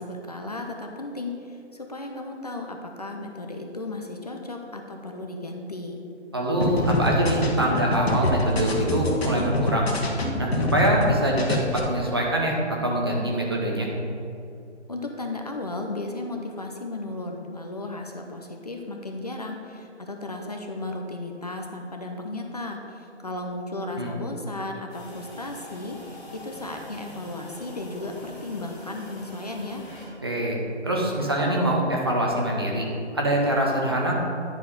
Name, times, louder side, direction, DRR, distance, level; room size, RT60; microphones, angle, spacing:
voice 1, 0.0-6.0 14.9-29.8, left 2 dB, 35° left, 3 dB, 0.6 m, -35 dB
voice 2, 6.3-9.9 10.4-13.9 24.0-24.1 30.2-30.6 30.8-32.8 33.1-34.1, right 1 dB, 20° right, -2 dB, 0.7 m, -24 dB
sound 1, 6.6-11.1 11.4-11.8, left 1 dB, 60° left, 1.5 m, -25 dB
sound 2, 24.9-30.1, equal, 5° left, 1.2 m, -44 dB
10.0 x 4.7 x 5.2 m, 2.6 s
figure-of-eight pair, 160°, 35 cm